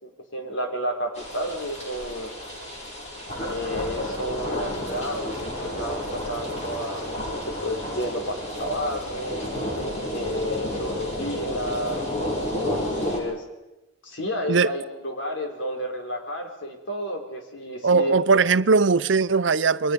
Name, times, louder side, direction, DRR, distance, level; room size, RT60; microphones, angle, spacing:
voice 1, 0.0-2.3 3.4-9.4 10.1-12.0 12.4-13.4 14.0-18.1, equal, 80° left, 4.2 m, -31 dB
sound 1, 1.2-13.2, left 1 dB, 35° left, 6.2 m, -31 dB
voice 2, 17.8-19.9, right 4 dB, 80° right, 0.7 m, -19 dB
28.5 x 22.5 x 5.3 m
head